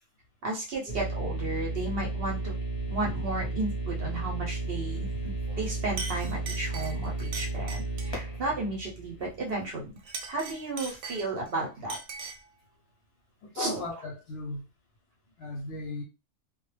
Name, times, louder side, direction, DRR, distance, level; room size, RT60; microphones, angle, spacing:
voice 1, 0.4-2.6 2.9-9.9 10.3-12.0 13.5-13.8, right 2 dB, 55° right, 0.8 m, -33 dB
sound 1, 0.9-9.8, right 2 dB, 25° left, 0.7 m, -33 dB
Chink clink, 5.5-5.7 6.0-8.2 10.0-11.5 11.9-12.5, right 4 dB, 90° right, 1.0 m, -40 dB
voice 2, 13.4-14.7 15.4-16.0, left 3 dB, 60° left, 0.8 m, -36 dB
2.3 x 2.0 x 3.1 m
omnidirectional pair, 1.4 m